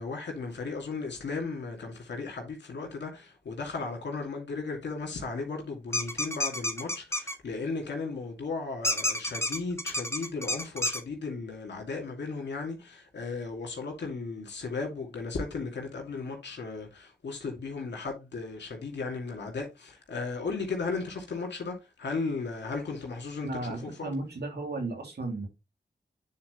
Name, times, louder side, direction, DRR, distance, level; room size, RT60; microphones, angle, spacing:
voice 1, 0.0-24.1, left 4 dB, 85° left, 2.6 m, -35 dB
sound 1, 5.9-7.3 8.8-11.0, left 1 dB, 15° left, 1.6 m, -29 dB
voice 2, 23.4-25.5, right 2 dB, 70° right, 2.8 m, -34 dB
9.5 x 4.3 x 3.2 m
cardioid pair, 40°, 18 cm